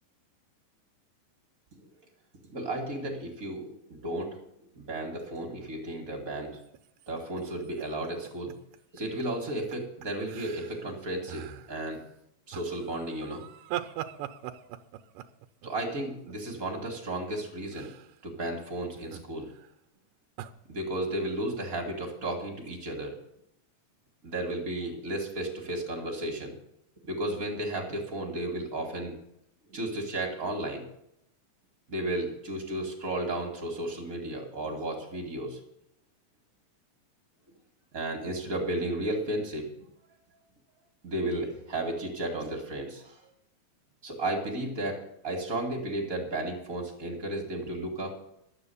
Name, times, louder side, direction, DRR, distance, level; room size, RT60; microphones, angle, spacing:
voice 1, 2.5-4.4 4.7-6.6 7.1-8.5 8.9-12.0 12.5-13.4 15.6-17.9 18.2-19.5 20.7-23.2 24.2-26.5 27.1-29.2 29.7-30.8 31.9-35.6 37.9-39.7 41.0-43.2 44.0-48.2, right 1 dB, 35° right, 0 dB, 1.6 m, -33 dB
sound 1, 6.5-9.2 9.5-9.7 10.0-10.9 11.3-11.9 12.5-16.8 17.7-18.2 18.9-19.7 20.4-20.5, right 12 dB, 75° right, 2.2 m, -41 dB
12.0 x 8.3 x 6.9 m, 0.77 s
omnidirectional pair, 4.1 m